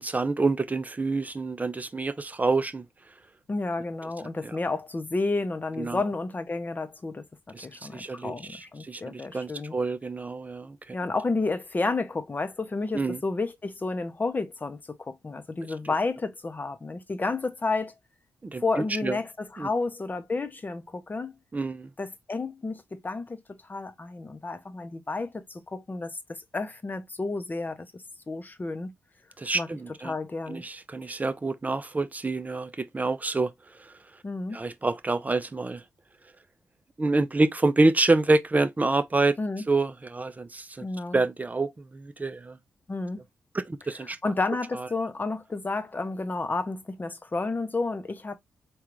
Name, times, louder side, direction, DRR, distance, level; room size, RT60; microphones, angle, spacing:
voice 1, 0.0-2.9 4.4-4.6 5.8-6.0 7.5-7.7 7.9-11.0 12.9-13.2 18.4-19.2 19.6-19.7 21.5-21.9 29.4-30.1 30.5-33.5 33.8-33.9 34.5-35.8 37.0-39.3 39.7-40.9 41.1-42.6 43.5-44.2 44.8-44.9, right 3 dB, 30° right, 0.5 m, -27 dB
voice 2, 3.5-7.3 7.6-9.8 10.9-17.9 18.6-21.4 22.0-28.9 29.5-29.7 30.0-30.7 34.2-34.6 39.4-39.6 40.8-41.2 42.9-43.2 44.2-48.4, left 3 dB, 35° left, 0.6 m, -31 dB
3.7 x 2.3 x 3.0 m
supercardioid pair, 45°, 6 cm